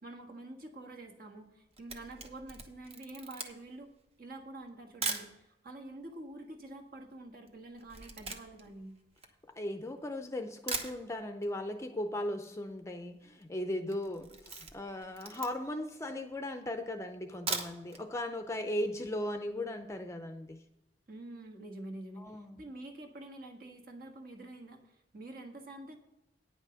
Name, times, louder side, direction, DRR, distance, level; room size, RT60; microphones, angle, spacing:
voice 1, 0.0-3.9 4.2-9.0 21.1-26.0, right 2 dB, 55° right, 4 dB, 1.5 m, -47 dB
Camera, 1.5-5.3 6.0-6.1 6.3-10.0 10.4-10.5 10.7-11.5 11.8-11.9 12.2-12.3 12.5-12.9 13.2-13.5 13.8-15.8 16.3-16.4 17.2-18.0 18.4-18.5 18.8-18.9, right 4 dB, 35° right, 1.1 m, -40 dB
voice 2, 9.6-20.6 22.2-22.6, left 1 dB, 15° left, 6 dB, 0.5 m, -37 dB
9.7 x 5.9 x 6.9 m, 0.90 s
head